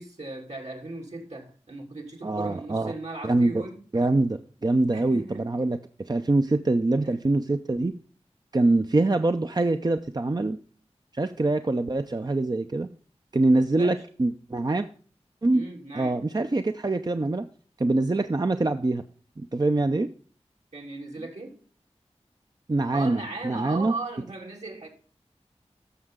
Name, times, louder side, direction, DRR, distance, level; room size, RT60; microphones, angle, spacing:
voice 1, 0.0-3.8 4.9-5.5 7.0-7.1 13.7-14.0 15.5-16.2 20.7-21.6 22.9-24.9, right 2 dB, 75° right, 3.1 m, -37 dB
voice 2, 2.2-2.9 3.2-3.5 3.9-7.9 8.5-10.6 11.1-12.9 13.3-14.9 15.4-15.6 15.9-17.5 17.8-19.0 19.4-20.1 22.7-23.9, right 2 dB, 35° right, 0.6 m, -24 dB
14.0 x 6.5 x 3.7 m
wide cardioid pair, 40°, 12 cm